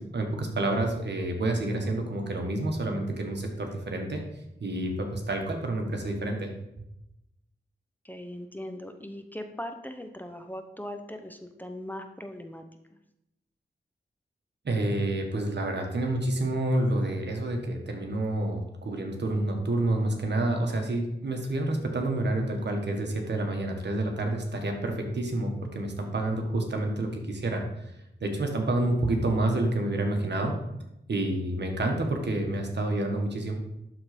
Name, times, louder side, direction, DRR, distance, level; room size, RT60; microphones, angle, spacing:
voice 1, 0.0-4.2 4.6-6.5 14.6-27.6 28.2-30.5 31.1-33.5, right 1 dB, 70° right, 3 dB, 1.6 m, -28 dB
voice 2, 8.0-12.6, left 1 dB, 10° left, 6 dB, 0.9 m, -39 dB
12.0 x 4.0 x 5.2 m, 0.86 s
cardioid pair, 60°, 19 cm